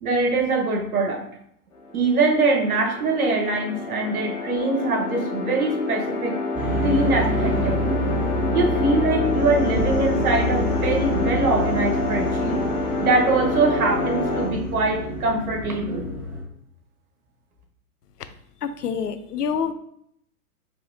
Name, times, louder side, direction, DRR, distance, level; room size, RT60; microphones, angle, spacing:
voice 1, 0.0-1.2 1.9-6.4 6.8-7.8 8.5-12.6 13.0-16.0, right 3 dB, 65° right, 1 dB, 1.2 m, -23 dB
sound 1, 1.7-14.5, left 3 dB, 65° left, 1.5 m, -28 dB
sound 2, 6.5-16.4, equal, 5° right, 0.6 m, -27 dB
sound 3, 6.6-16.2, right 3 dB, 45° left, 1.4 m, -40 dB
voice 2, 18.8-19.7, left 7 dB, 85° left, 10 dB, 0.6 m, -26 dB
4.3 x 3.0 x 2.7 m, 0.70 s
figure-of-eight pair, 120°, 46 cm